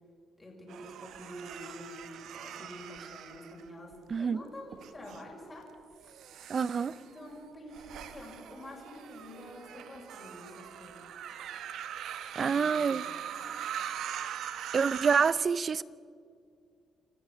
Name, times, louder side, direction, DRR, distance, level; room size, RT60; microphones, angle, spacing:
voice 1, 0.4-5.7 6.9-11.0 12.4-13.1, left 1 dB, 20° left, 6.0 m, -47 dB
sound 1, 0.7-4.1 4.7-5.2 5.9-15.3, right 9 dB, 75° right, 1.1 m, -42 dB
voice 2, 6.5-6.9 12.4-13.0 14.7-15.8, right 6 dB, 45° right, 0.6 m, -27 dB
27.5 x 14.0 x 7.4 m
cardioid pair, 90°, 0 cm